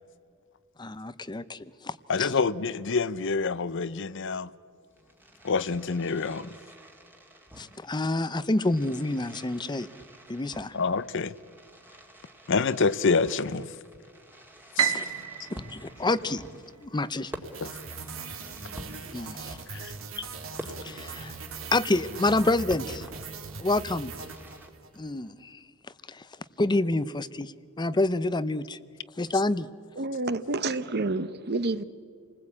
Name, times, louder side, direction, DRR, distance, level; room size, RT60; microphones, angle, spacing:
voice 1, 0.8-2.3 7.6-9.9 10.3-10.8 14.9-15.1 15.5-16.4 16.8-17.3 19.1-19.6 20.2-20.3 20.8-21.3 21.7-23.1 23.6-24.1 25.0-25.6 26.1-26.3 26.6-28.8 29.2-29.7, left 2 dB, 20° left, 0.7 m, -28 dB
voice 2, 2.1-4.5 5.4-6.5 10.7-11.3 12.5-13.7 14.8-14.9 17.6-17.7 19.7-19.9, left 4 dB, 60° left, 0.7 m, -27 dB
Fireworks, 4.9-24.7, right 1 dB, 10° right, 2.0 m, -48 dB
Piano, 14.8-17.0, right 9 dB, 90° right, 1.7 m, -31 dB
sound 1, 17.4-25.0, right 4 dB, 65° right, 2.5 m, -40 dB
voice 3, 30.0-31.8, right 2 dB, 50° right, 1.0 m, -29 dB
28.5 x 20.0 x 8.6 m
head